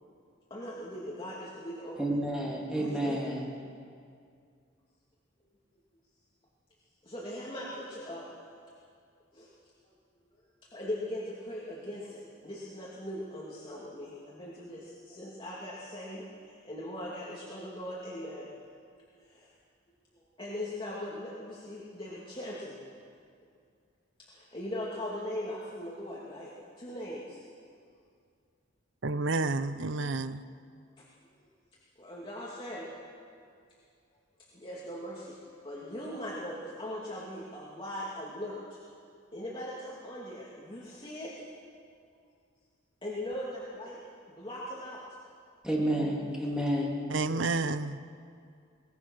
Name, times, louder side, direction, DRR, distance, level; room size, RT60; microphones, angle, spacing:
voice 1, 0.5-2.2 2.7-3.2 7.0-8.3 9.3-9.5 9.8-9.9 10.7-18.5 19.2-19.5 20.1-22.8 24.3-26.5 26.8-27.4 31.0-31.1 32.0-32.9 33.4-33.5 34.4-35.4 35.6-38.8 39.3-41.3 43.0-44.0 44.3-45.0, left 1 dB, 25° left, 2.6 m, -40 dB
voice 2, 2.0-3.4 45.6-47.0, right 1 dB, 5° right, 3.0 m, -30 dB
voice 3, 29.0-30.4 47.1-48.0, right 3 dB, 70° right, 0.8 m, -30 dB
23.0 x 20.0 x 6.3 m
head